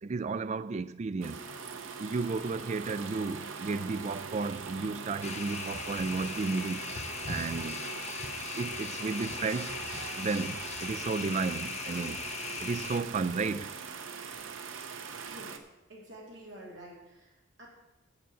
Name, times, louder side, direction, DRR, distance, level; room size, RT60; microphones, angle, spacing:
voice 1, 0.0-1.4 2.0-6.9 7.3-7.9 8.6-9.7 10.2-12.2 12.6-13.7, right 4 dB, 35° right, 0.3 m, -33 dB
sound 1, 1.2-15.6, right 5 dB, 85° right, 0.8 m, -42 dB
sound 2, 5.2-13.0, left 6 dB, 35° left, 0.5 m, -39 dB
voice 2, 15.1-17.7, right 1 dB, 60° right, 3.0 m, -50 dB
7.7 x 6.9 x 7.7 m
head